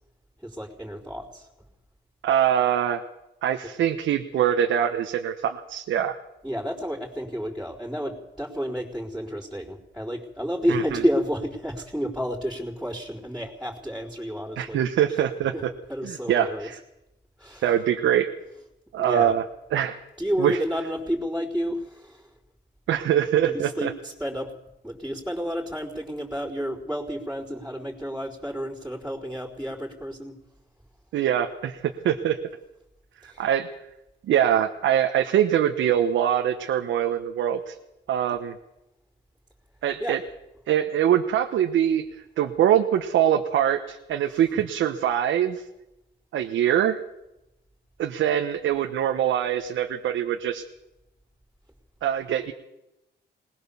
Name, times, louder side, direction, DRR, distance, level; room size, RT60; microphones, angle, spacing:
voice 1, 0.4-1.5 6.4-14.8 15.5-15.6 15.9-16.7 17.4-17.8 19.0-19.4 20.2-22.3 23.5-24.5 24.8-30.4 33.2-33.5 40.0-40.2 44.5-44.7, equal, 5° right, -7 dB, 4.1 m, -30 dB
voice 2, 2.2-3.0 3.4-6.2 10.7-11.0 14.6-15.7 16.0-16.8 17.6-18.3 18.9-19.4 19.7-20.0 20.4-20.6 22.9-23.9 31.1-32.4 33.2-33.7 34.3-37.7 38.1-38.6 39.8-40.2 40.7-42.0 42.4-45.6 46.3-47.0 48.0-50.6 52.0-52.5, right 10 dB, 75° right, 5 dB, 1.2 m, -23 dB
20.0 x 19.5 x 7.2 m, 0.93 s
cardioid pair, 90°, 20 cm